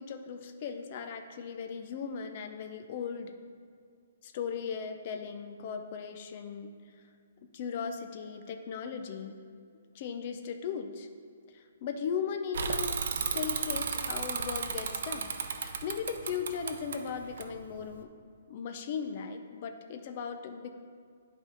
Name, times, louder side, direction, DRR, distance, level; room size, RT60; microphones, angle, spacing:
voice 1, 0.0-3.3 4.2-6.7 7.5-9.4 9.9-11.1 11.5-18.1 18.5-20.7, left 6 dB, 35° left, 6 dB, 0.5 m, -37 dB
Bicycle / Mechanisms, 12.5-18.0, right 5 dB, 55° right, 0.6 m, -34 dB
10.5 x 3.6 x 5.0 m, 2.2 s
hypercardioid pair, 170°, 0 cm